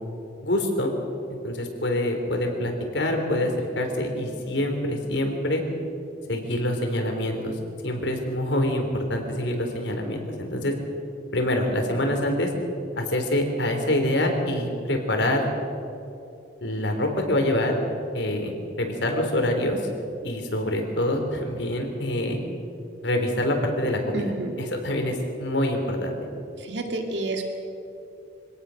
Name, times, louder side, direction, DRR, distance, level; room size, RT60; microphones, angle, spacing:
voice 1, 0.4-0.9 1.4-5.6 6.3-7.5 7.8-10.7 11.3-12.5 13.0-15.4 16.6-17.7 18.1-18.5 18.8-19.8 20.2-22.4 23.0-24.3 24.6-26.1, left 1 dB, 80° left, 3 dB, 3.7 m, -25 dB
voice 2, 24.1-24.6 26.6-27.4, right 2 dB, 70° right, 3 dB, 2.5 m, -29 dB
25.5 x 17.5 x 6.5 m, 2.7 s
head